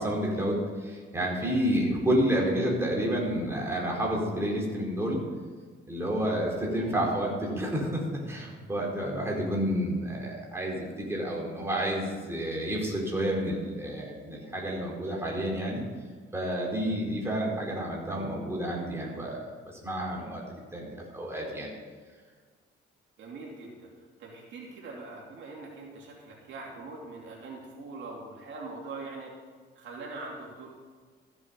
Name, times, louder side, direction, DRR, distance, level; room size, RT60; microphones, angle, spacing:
voice 1, 0.0-5.2 5.9-15.8 16.3-19.4 19.8-20.4 20.7-21.7, equal, 15° right, -3 dB, 4.4 m, -30 dB
voice 2, 6.7-7.0 23.2-29.3 29.7-30.7, right 3 dB, 70° right, -2 dB, 2.9 m, -42 dB
14.5 x 8.1 x 5.4 m, 1.6 s
cardioid pair, 90°, 20 cm